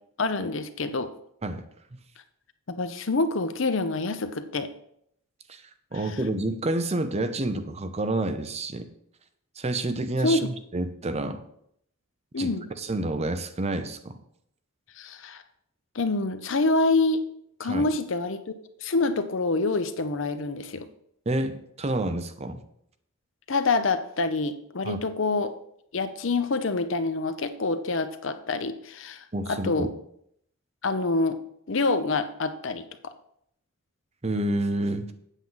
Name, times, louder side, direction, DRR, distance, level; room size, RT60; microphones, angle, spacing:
voice 1, 0.2-1.1 2.7-4.7 10.2-10.5 12.3-12.7 15.0-15.4 15.9-17.2 17.6-18.4 18.8-20.9 23.5-25.5 25.9-29.9 30.8-31.4 31.7-33.1, left 3 dB, 65° left, 10 dB, 0.8 m, -26 dB
voice 2, 5.9-8.9 9.6-11.4 12.4-14.2 17.6-17.9 21.3-22.6 24.8-25.0 29.3-29.9 34.2-35.1, right 2 dB, 30° right, 9 dB, 0.8 m, -29 dB
8.2 x 7.6 x 5.7 m, 0.71 s
head